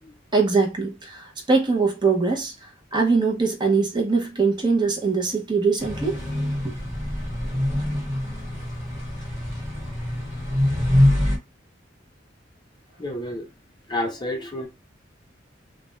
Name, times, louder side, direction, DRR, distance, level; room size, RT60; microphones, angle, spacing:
voice 1, 0.3-6.2 6.6-6.7, right 4 dB, 25° right, 0.6 m, -22 dB
sound 1, 5.8-11.4, left 1 dB, 40° right, 1.3 m, -24 dB
voice 2, 13.0-13.5 13.9-14.7, left 1 dB, 25° left, 0.5 m, -30 dB
2.4 x 2.1 x 3.0 m
head